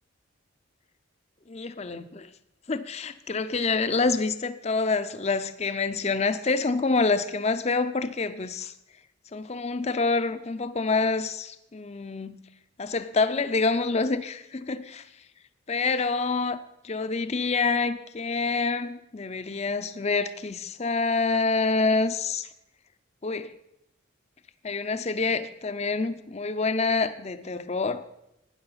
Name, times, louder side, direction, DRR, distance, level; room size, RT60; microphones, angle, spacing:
voice 1, 1.5-2.3 2.7-8.7 9.3-12.4 12.8-15.1 15.7-16.6 16.8-22.5 23.2-23.5 24.6-28.0, left 4 dB, 30° left, 0.5 m, -27 dB
12.5 x 9.7 x 5.6 m
head